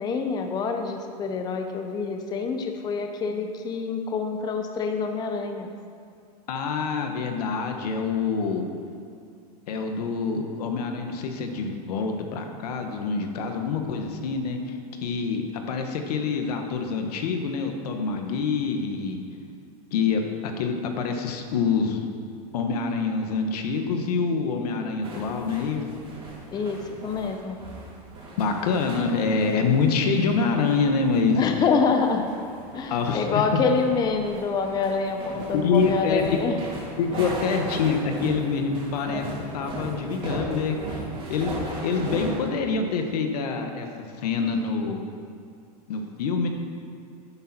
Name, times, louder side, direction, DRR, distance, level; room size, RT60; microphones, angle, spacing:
voice 1, 0.0-5.7 26.5-27.6 31.4-32.3 32.7-36.6 37.1-37.3, left 5 dB, 20° left, 4 dB, 0.7 m, -26 dB
voice 2, 6.5-8.6 9.7-19.2 19.9-22.1 22.5-25.8 28.4-31.4 32.9-33.6 35.5-36.2 37.0-39.2 39.5-41.0 41.3-43.9 44.2-45.0 45.9-46.5, left 5 dB, 75° left, 4 dB, 1.5 m, -26 dB
sound 1, 25.0-42.5, right 1 dB, 25° right, 3.1 m, -37 dB
11.5 x 10.0 x 4.4 m, 2.3 s
supercardioid pair, 145°, 20 cm